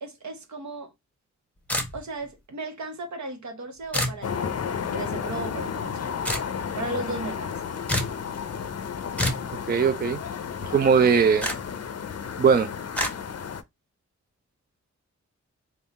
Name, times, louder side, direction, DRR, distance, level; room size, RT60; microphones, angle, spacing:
voice 1, 0.0-0.9 1.9-4.6 4.9-6.1 6.8-7.6, right 2 dB, 75° right, 1.1 m, -35 dB
sound 1, 1.7-2.2 3.9-4.2 6.2-6.5 7.9-8.2 9.2-9.5 11.4-11.6 13.0-13.1, left 1 dB, 5° left, 0.8 m, -27 dB
sound 2, 4.2-13.6, left 7 dB, 55° left, 0.5 m, -32 dB
voice 2, 9.7-10.2 10.7-11.5 12.4-12.7, right 6 dB, 35° right, 0.4 m, -19 dB
3.7 x 2.3 x 4.0 m
wide cardioid pair, 105°, 30 cm